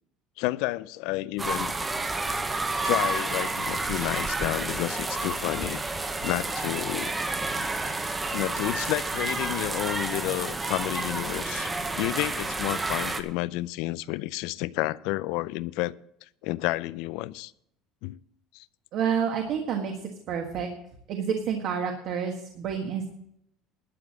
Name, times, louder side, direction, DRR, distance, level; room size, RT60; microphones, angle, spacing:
voice 1, 0.4-1.7 2.2-2.3 2.7-5.8 6.2-7.1 8.3-11.7 12.0-16.0 16.4-17.5 18.0-18.2 18.5-18.7, left 18 dB, 70° left, 19 dB, 0.4 m, -30 dB
sound 1, 1.4-13.2, right 2 dB, 15° right, 0.9 m, -30 dB
voice 2, 18.9-20.7 21.1-23.1, right 7 dB, 50° right, 3 dB, 1.5 m, -29 dB
12.0 x 6.9 x 7.6 m, 0.73 s
cardioid pair, 150°, 0 cm